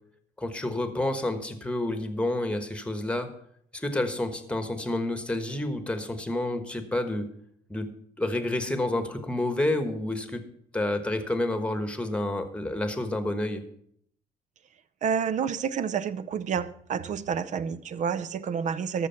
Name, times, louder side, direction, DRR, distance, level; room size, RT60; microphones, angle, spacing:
voice 1, 0.4-3.3 3.7-7.3 7.7-7.9 8.2-10.4 10.7-13.6, left 1 dB, 5° left, 1.3 m, -29 dB
voice 2, 15.0-19.1, right 7 dB, 45° right, 0.6 m, -29 dB
13.5 x 6.3 x 5.7 m
cardioid pair, 110°, 17 cm